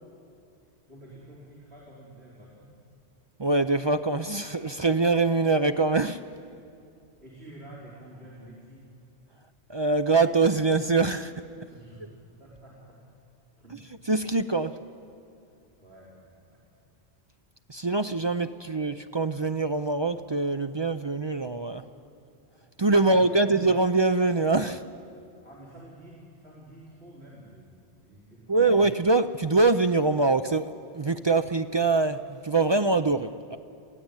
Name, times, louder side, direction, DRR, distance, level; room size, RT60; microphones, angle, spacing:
voice 1, 0.9-2.8 7.2-8.9 11.7-12.1 12.4-13.0 13.6-13.8 15.8-16.7 22.9-23.6 25.4-28.7, right 1 dB, 75° right, -7 dB, 4.8 m, -49 dB
voice 2, 3.4-6.2 9.7-11.3 14.1-14.7 17.7-21.8 22.8-24.8 28.5-30.7 30.9-33.6, right 3 dB, 40° right, 8 dB, 0.4 m, -24 dB
23.0 x 16.0 x 9.0 m, 2.6 s
omnidirectional pair, 1.1 m